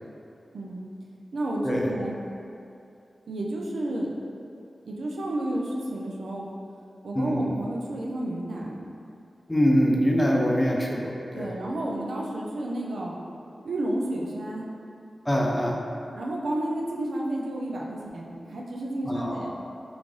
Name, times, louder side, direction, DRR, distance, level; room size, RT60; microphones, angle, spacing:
voice 1, 0.5-0.9 1.3-2.2 3.3-4.1 4.8-6.5 7.0-8.8 11.3-13.2 13.6-14.7 16.1-19.5, right 1 dB, 90° right, -2 dB, 0.4 m, -31 dB
voice 2, 7.1-7.5 9.5-11.5 15.3-15.8 19.0-19.4, equal, 15° left, -2 dB, 0.5 m, -24 dB
3.1 x 2.5 x 3.6 m, 2.6 s
cardioid pair, 60°, 0 cm